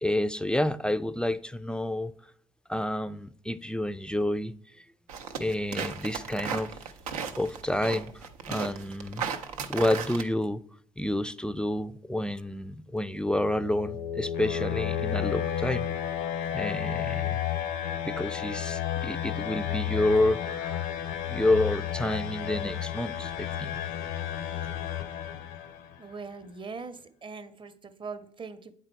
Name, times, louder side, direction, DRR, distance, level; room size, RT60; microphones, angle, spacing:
voice 1, 0.0-2.1 2.7-4.5 5.4-6.8 7.4-9.2 9.7-10.6 11.0-15.9 16.5-17.4 18.0-20.9 21.3-23.7, left 1 dB, 5° left, 12 dB, 0.3 m, -29 dB
sound 1, 5.1-10.2, right 6 dB, 85° right, 0.6 m, -35 dB
sound 2, 13.1-26.0, left 10 dB, 70° left, 0.6 m, -32 dB
voice 2, 26.0-28.7, right 4 dB, 25° right, 11 dB, 0.7 m, -41 dB
8.1 x 3.8 x 4.4 m, 0.63 s
hypercardioid pair, 55°, 18 cm